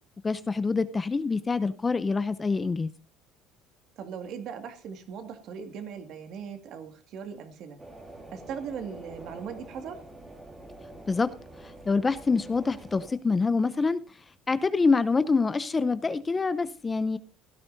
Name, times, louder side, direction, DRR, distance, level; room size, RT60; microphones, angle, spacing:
voice 1, 0.2-2.9 11.1-11.3 11.9-14.0 14.5-17.2, left 4 dB, 15° left, 0.5 m, -26 dB
voice 2, 4.0-7.8 8.3-10.0, right 7 dB, 50° right, 2.0 m, -39 dB
sound 1, 7.8-13.1, right 1 dB, 15° right, 2.2 m, -46 dB
16.5 x 12.5 x 2.6 m
cardioid pair, 145°, 0 cm